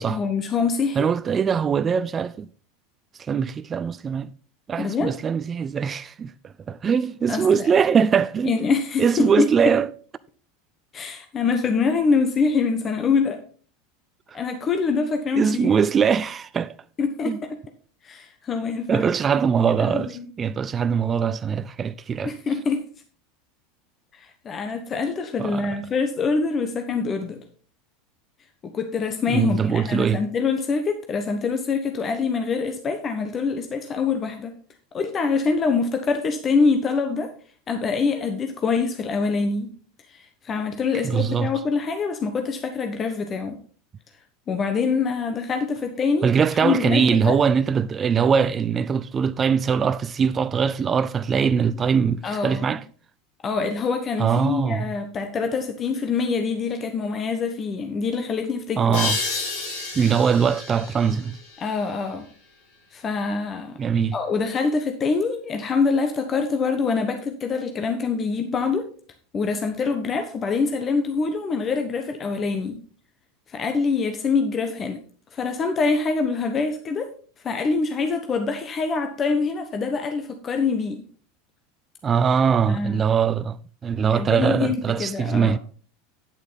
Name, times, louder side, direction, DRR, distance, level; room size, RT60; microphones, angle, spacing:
voice 1, 0.0-1.0 4.8-5.1 7.3-7.7 8.4-9.7 10.9-13.4 14.3-15.7 17.0-17.6 18.0-19.1 19.8-20.3 22.2-22.8 24.1-27.4 28.6-34.5 34.9-37.3 37.7-39.7 40.1-43.6 44.5-47.4 52.2-52.7 53.4-59.0 61.6-62.3 62.9-63.8 64.1-68.9 69.3-72.8 73.5-75.0 75.3-77.1 77.4-81.0 82.7-83.0 84.1-85.6, left 4 dB, 35° left, 1.2 m, -25 dB
voice 2, 1.0-2.5 3.2-4.3 4.7-8.5 9.0-9.9 14.3-14.4 15.3-16.7 17.2-17.4 18.9-22.3 25.4-25.7 29.3-30.2 41.0-41.5 46.2-52.8 54.2-54.9 58.8-59.2 60.0-61.4 63.8-64.1 82.0-83.6 83.8-85.6, right 6 dB, 30° right, 0.4 m, -22 dB
sound 1, 58.9-62.3, left 4 dB, 75° left, 4.6 m, -31 dB
9.1 x 7.9 x 4.0 m
hypercardioid pair, 90°, 0 cm